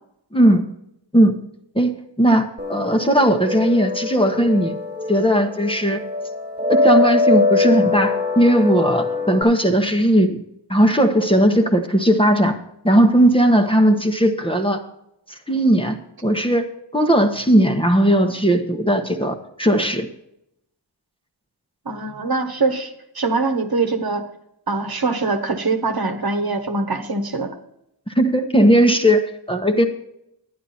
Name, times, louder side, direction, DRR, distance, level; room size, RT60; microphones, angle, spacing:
voice 1, 0.3-0.7 1.1-1.3 1.7-4.7 5.1-6.0 6.7-10.4 10.7-12.6 12.8-14.8 15.5-16.7 16.9-20.1 28.1-29.8, right 1 dB, 10° left, 4 dB, 1.1 m, -17 dB
sound 1, 2.6-9.4, left 3 dB, 20° right, 2.0 m, -22 dB
voice 2, 21.8-24.3 24.7-27.5, right 3 dB, 50° right, 5 dB, 1.3 m, -23 dB
11.0 x 9.5 x 4.2 m, 0.79 s
wide cardioid pair, 70°, 45 cm